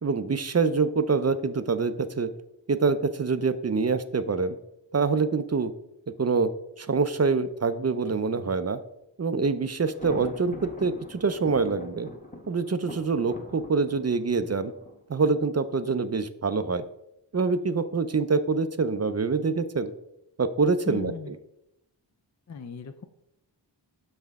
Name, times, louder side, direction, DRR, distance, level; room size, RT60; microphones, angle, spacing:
voice 1, 0.0-2.3 2.7-4.6 4.9-5.7 6.2-6.5 6.8-8.8 9.2-12.1 12.5-14.7 15.1-16.8 17.3-19.9 20.4-21.3, right 4 dB, 35° right, 12 dB, 0.5 m, -25 dB
Thunder, 9.9-15.7, left 1 dB, 20° left, 0.9 m, -43 dB
voice 2, 20.8-21.4 22.5-23.0, left 6 dB, 40° left, 9 dB, 0.4 m, -37 dB
6.4 x 5.6 x 3.5 m, 0.84 s
wide cardioid pair, 45°, 46 cm